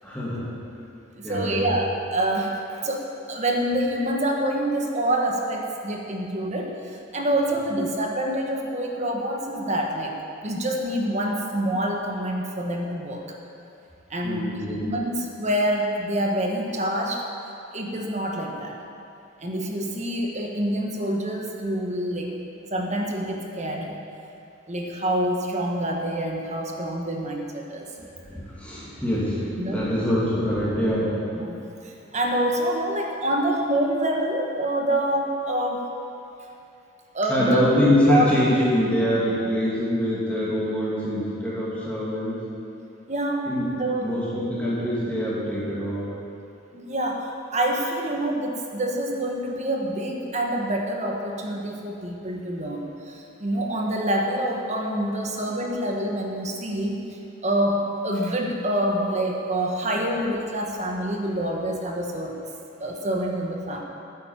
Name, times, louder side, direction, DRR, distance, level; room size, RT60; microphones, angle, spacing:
voice 1, 0.0-0.5 1.2-1.6 1.8-1.9 14.2-14.8 28.0-31.4 37.3-42.4 43.5-43.6 44.0-46.1 54.9-55.0, left 1 dB, 5° left, -9 dB, 2.9 m, -24 dB
voice 2, 1.1-10.1 10.4-13.4 14.1-14.5 14.8-17.2 17.7-18.7 19.4-22.4 22.7-23.9 24.7-27.9 29.6-29.8 31.5-31.6 31.8-35.9 37.1-37.7 38.1-38.3 43.1-43.5 43.8-44.1 46.7-57.0 57.4-62.3 62.8-63.8, right 1 dB, 35° right, 1 dB, 1.6 m, -26 dB
13.0 x 10.0 x 7.5 m, 2.7 s
head